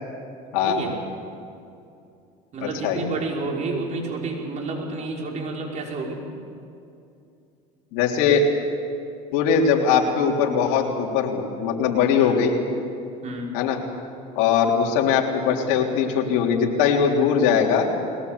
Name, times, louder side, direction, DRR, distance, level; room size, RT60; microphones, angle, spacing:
voice 1, 0.6-0.9 2.5-6.2 12.2-12.4 13.2-13.6, right 3 dB, 45° right, -1 dB, 5.6 m, -30 dB
voice 2, 2.6-3.0 7.9-8.5 9.3-12.5 13.5-13.8 14.4-17.9, left 6 dB, 75° left, 0 dB, 3.4 m, -21 dB
21.5 x 19.0 x 8.3 m, 2.5 s
supercardioid pair, 100°, 17 cm